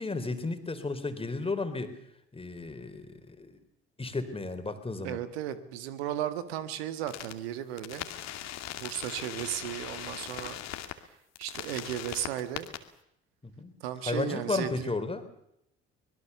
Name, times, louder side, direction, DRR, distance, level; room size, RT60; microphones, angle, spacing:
voice 1, 0.0-1.9 2.3-3.6 4.0-5.2 13.6-13.7 14.0-15.2, left 3 dB, 15° left, 9 dB, 4.0 m, -33 dB
voice 2, 5.0-8.1 8.8-10.6 11.4-12.7 13.8-15.0, right 11 dB, 70° right, 12 dB, 1.8 m, -35 dB
sound 1, 7.1-7.3 7.8-10.9 11.4-12.8, left 12 dB, 55° left, 2.5 m, -39 dB
25.0 x 21.0 x 7.0 m, 0.77 s
figure-of-eight pair, 55°, 33 cm